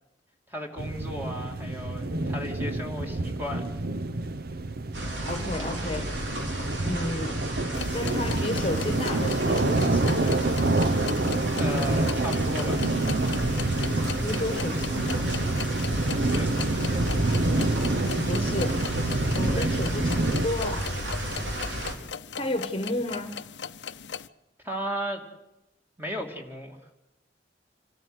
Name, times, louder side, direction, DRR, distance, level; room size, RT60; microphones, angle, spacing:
voice 1, 0.5-3.7 11.6-12.8 16.1-16.5 19.5-19.8 24.6-25.2 26.0-26.8, equal, 10° right, 2 dB, 2.7 m, -35 dB
sound 1, 0.8-20.5, right 2 dB, 55° right, 0.9 m, -27 dB
sound 2, 4.9-21.9, right 1 dB, 80° right, 3.8 m, -33 dB
voice 2, 5.2-6.1 6.8-7.4 7.9-10.2 14.2-15.0 18.2-18.8 19.3-20.9 22.3-23.4, left 1 dB, 30° left, 7 dB, 1.4 m, -32 dB
sound 3, 7.7-24.3, left 7 dB, 75° left, 0.7 m, -39 dB
26.5 x 13.5 x 8.2 m, 0.92 s
head